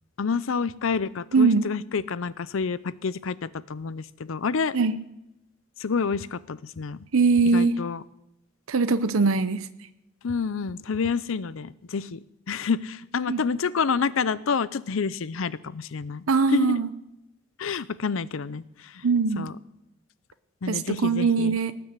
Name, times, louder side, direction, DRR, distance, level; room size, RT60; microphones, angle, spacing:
voice 1, 0.2-4.8 5.8-7.0 7.5-8.0 10.2-16.2 16.5-16.8 17.6-19.1 19.4-19.6 20.6-21.5, left 5 dB, 70° left, 18 dB, 0.5 m, -28 dB
voice 2, 1.3-1.7 4.7-5.0 7.1-7.8 8.7-9.7 13.3-13.4 16.3-16.9 19.0-19.5 20.7-21.7, right 4 dB, 80° right, 12 dB, 0.7 m, -21 dB
18.5 x 7.0 x 8.1 m, 0.88 s
head